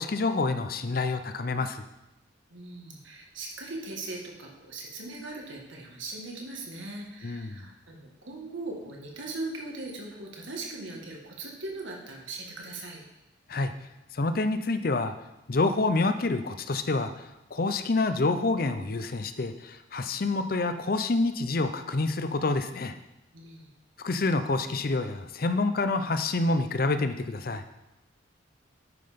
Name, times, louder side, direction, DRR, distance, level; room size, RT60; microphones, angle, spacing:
voice 1, 0.0-1.8 7.2-7.7 13.5-13.7 14.1-15.1 15.5-22.9 24.0-27.6, left 3 dB, 50° left, 9 dB, 0.6 m, -27 dB
voice 2, 2.5-13.0 23.3-23.7, right 2 dB, 85° right, 0 dB, 1.8 m, -39 dB
9.4 x 5.7 x 5.2 m, 0.94 s
head